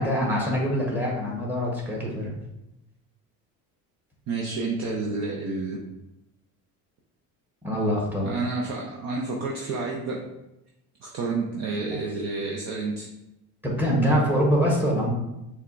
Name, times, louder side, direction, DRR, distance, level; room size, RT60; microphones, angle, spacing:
voice 1, 0.0-2.3 7.6-8.3 11.8-12.0 13.6-15.1, equal, 5° right, -2 dB, 1.0 m, -24 dB
voice 2, 4.3-5.8 8.2-10.2 11.0-13.1, right 3 dB, 45° right, -2 dB, 0.6 m, -29 dB
6.9 x 2.3 x 2.5 m, 0.92 s
cardioid pair, 130°, 37 cm